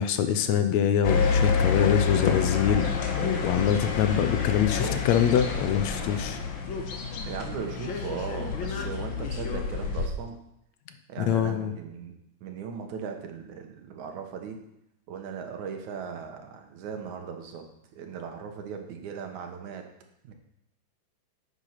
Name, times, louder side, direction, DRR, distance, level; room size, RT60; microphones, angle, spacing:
voice 1, 0.0-2.9 3.4-6.4 11.2-11.7, left 9 dB, 80° left, 9 dB, 1.9 m, -24 dB
sound 1, 1.0-10.1, left 5 dB, 55° left, 1.5 m, -28 dB
voice 2, 7.3-10.4 11.1-14.6 15.1-17.6 17.9-19.9 20.2-20.3, right 6 dB, 85° right, 4 dB, 2.7 m, -38 dB
9.1 x 7.9 x 5.8 m, 0.80 s
omnidirectional pair, 3.3 m